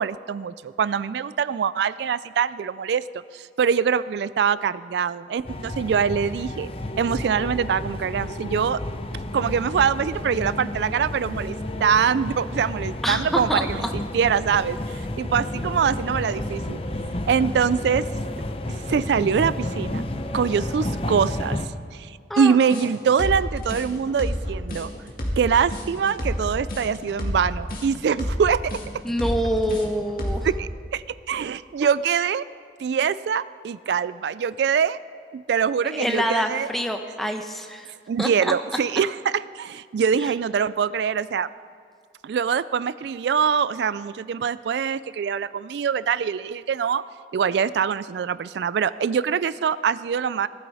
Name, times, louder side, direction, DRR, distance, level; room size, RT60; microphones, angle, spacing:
voice 1, 0.0-6.7 7.0-8.8 9.3-11.6 11.8-16.8 17.3-18.0 18.9-20.0 20.3-21.6 21.9-24.9 25.4-28.7 30.4-32.4 32.8-35.0 35.3-36.7 38.1-41.5 42.2-47.0 47.3-50.5, right 7 dB, 70° right, 17 dB, 0.3 m, -24 dB
sound 1, 5.5-21.7, left 1 dB, 30° left, 0.8 m, -31 dB
voice 2, 13.0-13.9 22.3-22.6 29.0-30.5 35.9-37.9 38.2-38.5, equal, ahead, 4 dB, 0.9 m, -26 dB
sound 2, 22.7-30.6, equal, 50° left, 2.2 m, -29 dB
18.5 x 12.5 x 4.8 m, 2.2 s
head